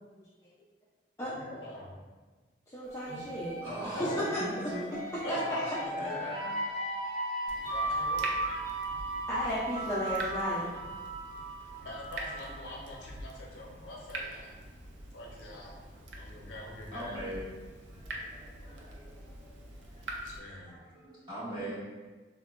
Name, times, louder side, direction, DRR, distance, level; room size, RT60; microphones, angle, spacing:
voice 1, 1.2-2.0 3.0-3.3 3.9-4.2 5.2-6.3 7.6-8.4 11.8-14.6 15.1-15.8 16.2-17.2 20.2-20.8, left 1 dB, 85° left, -2 dB, 0.6 m, -44 dB
voice 2, 2.7-4.4 5.3-5.5 7.6-8.0 9.3-10.7, left 1 dB, 15° left, -10 dB, 0.4 m, -34 dB
sound 1, 2.9-12.6, right 2 dB, 50° right, 0.9 m, -36 dB
voice 3, 3.6-4.9 5.6-6.6 16.8-17.4 17.8-20.2 20.5-21.7, right 1 dB, 25° right, -12 dB, 1.4 m, -41 dB
Water tap faucet / Drip, 7.5-20.4, right 1 dB, 75° right, 0.4 m, -44 dB
3.6 x 2.2 x 2.3 m, 1.3 s
head